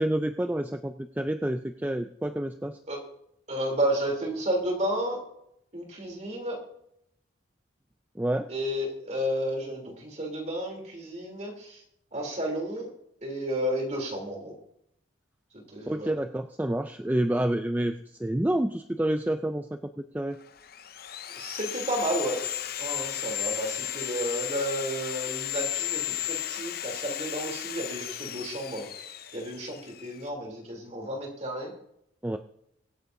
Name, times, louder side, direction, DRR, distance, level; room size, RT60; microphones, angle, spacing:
voice 1, 0.0-2.8 8.2-8.5 15.9-20.4 32.2-32.4, right 1 dB, 10° right, 7 dB, 0.4 m, -28 dB
voice 2, 3.5-5.2 5.7-6.6 8.5-11.8 12.1-12.9 13.2-14.5 15.7-16.1 21.3-22.4 22.8-28.8 29.3-31.7, right 1 dB, 35° right, 1 dB, 3.2 m, -32 dB
Sawing, 20.4-30.3, left 12 dB, 50° left, 0.6 m, -35 dB
24.0 x 8.3 x 2.7 m, 0.74 s
head